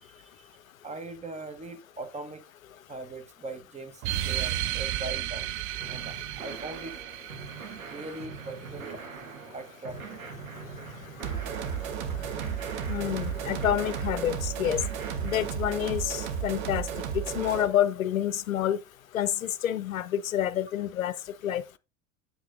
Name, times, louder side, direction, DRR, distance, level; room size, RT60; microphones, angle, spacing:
voice 1, 0.0-0.5 0.8-2.5 2.9-5.5 5.9-7.0 7.9-9.0 9.5-10.3, right 2 dB, 15° right, 1.3 m, -41 dB
sound 1, 4.0-9.0, right 14 dB, 35° right, 0.4 m, -34 dB
sound 2, 5.8-15.5, right 5 dB, 80° right, 1.5 m, -43 dB
sound 3, 11.2-17.7, right 8 dB, 60° right, 1.1 m, -33 dB
voice 2, 12.9-14.8 15.2-16.9 17.1-18.8 19.1-21.1 21.4-21.8, left 11 dB, 80° left, 0.6 m, -28 dB
8.2 x 7.0 x 2.6 m
figure-of-eight pair, 75°, 40 cm